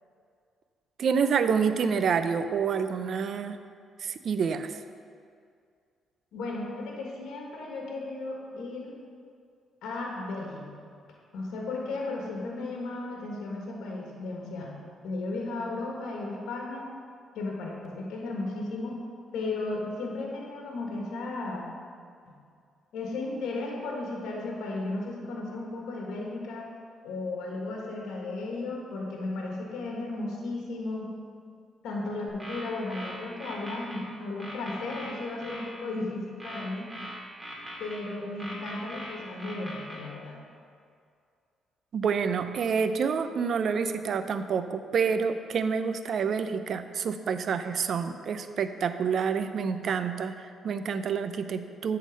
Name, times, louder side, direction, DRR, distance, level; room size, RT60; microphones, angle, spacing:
voice 1, 1.0-3.6 4.0-4.8 41.9-52.0, right 6 dB, 60° right, 10 dB, 0.4 m, -28 dB
voice 2, 6.3-8.9 9.8-10.7 11.3-14.7 15.0-16.9 17.3-19.0 19.3-21.7 22.2-22.3 22.9-26.7 27.0-31.1 31.8-36.9 37.8-40.4, left 2 dB, 80° left, -1 dB, 1.4 m, -35 dB
sound 1, 32.3-34.0 34.4-35.7 36.4-38.0 38.4-40.0, equal, 10° right, 2.0 m, -40 dB
8.3 x 3.9 x 6.3 m, 2.3 s
cardioid pair, 90°, 0 cm